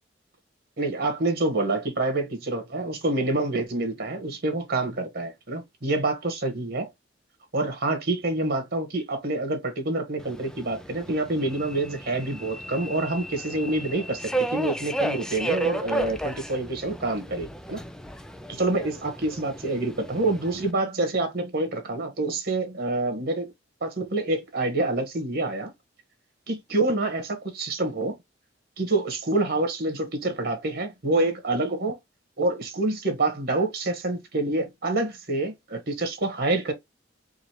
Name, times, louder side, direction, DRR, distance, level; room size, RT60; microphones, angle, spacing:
voice 1, 0.8-6.9 7.5-17.8 18.5-23.5 23.8-25.7 26.5-28.2 28.8-32.0 32.4-36.7, right 2 dB, 55° right, 1.4 m, -27 dB
Subway metro underground, 10.2-20.7, right 1 dB, 5° left, 0.4 m, -33 dB
4.9 x 2.7 x 3.0 m
head